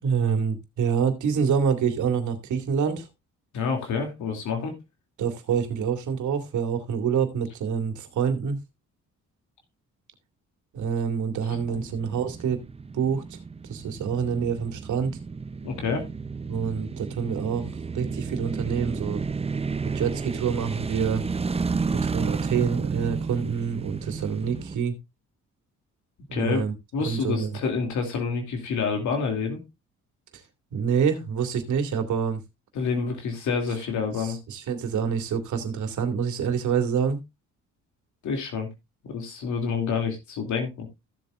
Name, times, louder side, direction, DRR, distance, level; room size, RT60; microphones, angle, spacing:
voice 1, 0.0-3.1 5.2-8.6 10.7-12.6 12.9-13.4 13.7-15.2 16.5-19.2 19.9-21.2 22.0-24.9 26.3-26.7 27.0-27.5 30.7-32.4 34.2-37.2, right 6 dB, 75° right, 2.4 m, -26 dB
voice 2, 3.5-4.7 11.7-11.9 15.6-16.1 26.3-26.6 26.9-29.6 32.7-34.4 38.2-38.7 39.0-40.9, left 5 dB, 75° left, 2.7 m, -28 dB
sound 1, 11.5-24.8, right 4 dB, 20° right, 0.7 m, -32 dB
15.0 x 7.6 x 2.5 m
cardioid pair, 90°, 30 cm